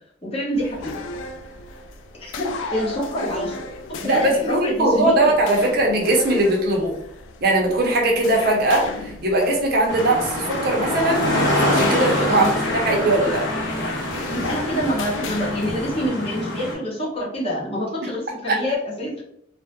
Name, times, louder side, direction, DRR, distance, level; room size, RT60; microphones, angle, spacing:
voice 1, 0.2-0.9 2.2-2.5 2.7-3.6 3.9-5.3 12.3-12.5 14.3-19.1, equal, 30° left, -4 dB, 0.8 m, -26 dB
sound 1, 0.5-16.1, left 3 dB, 85° left, 0.3 m, -35 dB
voice 2, 4.0-6.9 7.4-11.3 11.6-12.4 12.7-13.5 18.5-18.6, right 1 dB, 55° right, 0 dB, 0.5 m, -20 dB
sound 2, 9.9-16.7, left 1 dB, 70° left, 0.8 m, -25 dB
2.2 x 2.0 x 2.8 m, 0.70 s
head